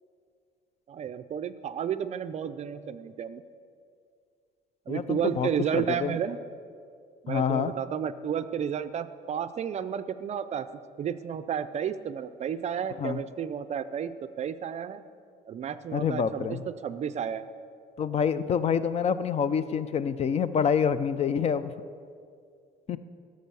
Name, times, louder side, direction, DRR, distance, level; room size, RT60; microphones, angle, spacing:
voice 1, 0.9-3.4 4.9-6.4 7.2-10.7 11.0-15.0 15.5-17.4, right 8 dB, 40° right, 12 dB, 0.5 m, -32 dB
voice 2, 4.9-6.2 7.3-7.7 13.0-13.2 15.9-16.6 18.0-21.7 22.9-23.0, left 7 dB, 40° left, 14 dB, 0.4 m, -27 dB
16.0 x 6.4 x 6.8 m, 2.3 s
cardioid pair, 150°, 17 cm